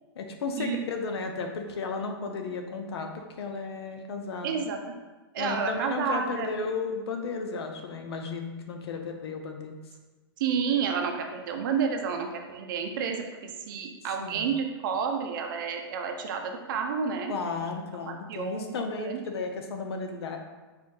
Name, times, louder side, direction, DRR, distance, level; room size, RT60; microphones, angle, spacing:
voice 1, 0.2-4.7 5.4-9.7 14.2-14.5 17.3-20.4, left 4 dB, 75° left, 4 dB, 0.7 m, -34 dB
voice 2, 4.4-4.8 5.3-6.5 10.4-17.4 18.0-19.2, right 6 dB, 50° right, 4 dB, 0.6 m, -30 dB
4.2 x 2.6 x 3.7 m, 1.3 s
hypercardioid pair, 150°, 13 cm